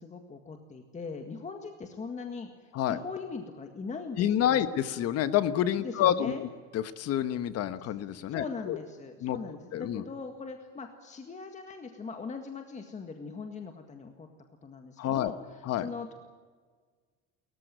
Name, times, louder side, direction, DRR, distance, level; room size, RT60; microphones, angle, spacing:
voice 1, 0.0-4.7 5.8-6.4 8.3-14.3 14.6-16.1, left 4 dB, 20° left, 5 dB, 1.9 m, -40 dB
voice 2, 4.2-6.5 6.7-8.8 9.2-9.4 9.7-10.0 15.0-15.3 15.6-15.9, left 11 dB, 50° left, 12 dB, 1.3 m, -28 dB
29.0 x 15.0 x 9.2 m, 1.5 s
cardioid pair, 140°, 32 cm